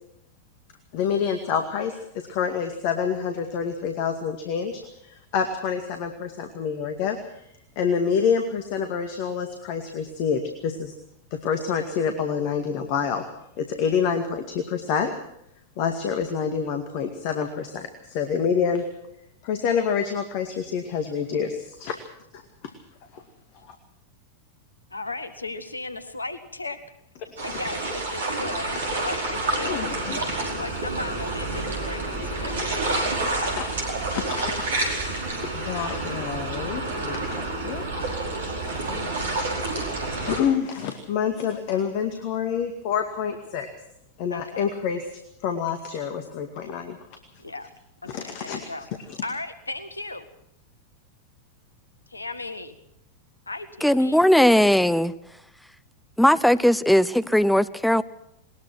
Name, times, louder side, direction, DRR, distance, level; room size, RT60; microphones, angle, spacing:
voice 1, 0.9-7.2 7.8-10.9 11.3-13.3 13.6-15.1 15.8-18.9 19.4-22.0 22.3-22.7 23.1-23.2 23.7-23.8 27.2-27.6 29.6-30.2 32.1-32.7 33.6-33.7 34.1-34.4 35.5-37.9 38.7-39.1 40.2-43.7 44.2-45.0 45.4-47.0 48.1-48.7 49.1-49.2, left 7 dB, 45° left, 6 dB, 2.2 m, -27 dB
voice 2, 24.9-26.8 27.4-29.9 30.5-33.6 44.3-44.6 47.4-47.7 48.0-48.9 49.2-50.3 52.1-52.7 53.5-54.2, left 3 dB, 80° left, 12 dB, 1.7 m, -36 dB
sound 1, 27.4-40.4, right 2 dB, 65° right, 4.8 m, -29 dB
voice 3, 53.8-55.1 56.2-58.0, equal, ahead, 15 dB, 0.8 m, -18 dB
20.5 x 20.0 x 6.2 m, 0.77 s
figure-of-eight pair, 90°, 0 cm